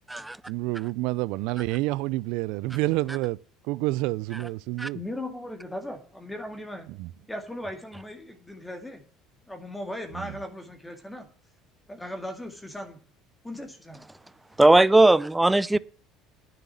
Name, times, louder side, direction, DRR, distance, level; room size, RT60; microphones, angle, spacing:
voice 1, 0.5-3.4 3.6-5.0 6.9-7.1 10.1-10.3 15.7-15.8, right 20 dB, 75° right, 0.4 m, -28 dB
voice 2, 4.9-6.9 7.3-9.0 9.5-11.3 11.9-13.0 13.4-14.0, left 1 dB, 10° left, 2.1 m, -37 dB
voice 3, 14.6-15.8, right 2 dB, 10° right, 0.5 m, -18 dB
10.0 x 6.7 x 7.4 m
supercardioid pair, 95°, 0 cm